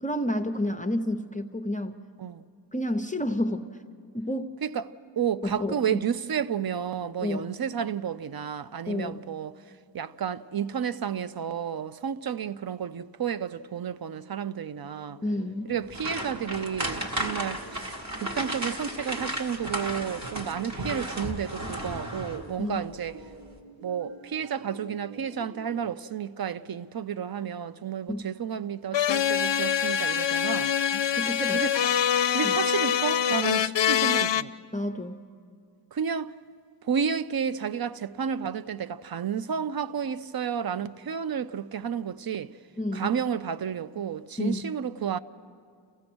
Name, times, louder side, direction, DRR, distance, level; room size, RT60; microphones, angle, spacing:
voice 1, 0.0-2.0 2.7-3.7 4.1-4.5 5.4-6.0 7.2-7.4 8.9-9.2 15.2-15.7 22.6-22.8 28.1-28.3 31.1-31.6 32.4-32.6 34.7-35.3 42.8-43.1 44.4-44.6, left 1 dB, 15° left, 0.7 m, -30 dB
voice 2, 5.2-9.5 9.9-15.2 15.6-17.9 18.2-23.1 23.8-30.7 31.4-31.9 32.3-34.5 35.9-36.3 36.8-42.5 42.9-45.2, right 7 dB, 55° right, 0.6 m, -31 dB
sound 1, 14.7-25.9, right 2 dB, 85° right, 2.3 m, -49 dB
sound 2, 15.9-22.6 22.9-23.1 23.5-23.6, right 1 dB, 35° right, 1.8 m, -34 dB
sound 3, 28.9-34.4, left 9 dB, 70° left, 0.5 m, -24 dB
28.5 x 15.5 x 6.2 m
wide cardioid pair, 95°, 45 cm